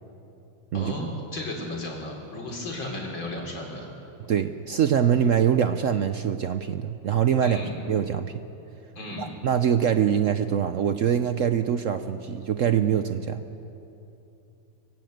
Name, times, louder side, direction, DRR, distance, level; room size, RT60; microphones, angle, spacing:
voice 1, 0.7-3.8 7.4-7.7 9.0-9.3, left 2 dB, 75° left, 0 dB, 4.5 m, -34 dB
voice 2, 4.3-7.6 7.9-8.3 9.2-13.4, right 8 dB, 75° right, 9 dB, 0.7 m, -24 dB
24.5 x 17.5 x 7.9 m, 2.8 s
omnidirectional pair, 2.2 m